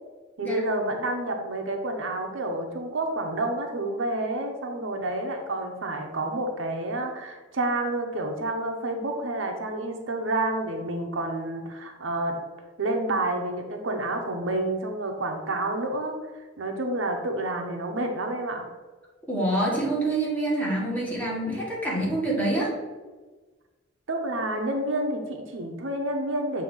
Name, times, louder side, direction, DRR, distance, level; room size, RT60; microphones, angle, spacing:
voice 1, 0.4-12.4 12.8-18.7 24.1-26.6, right 2 dB, 70° right, 3 dB, 0.7 m, -29 dB
voice 2, 19.3-22.7, right 1 dB, 10° left, -5 dB, 1.7 m, -26 dB
7.1 x 2.8 x 5.4 m, 1.3 s
head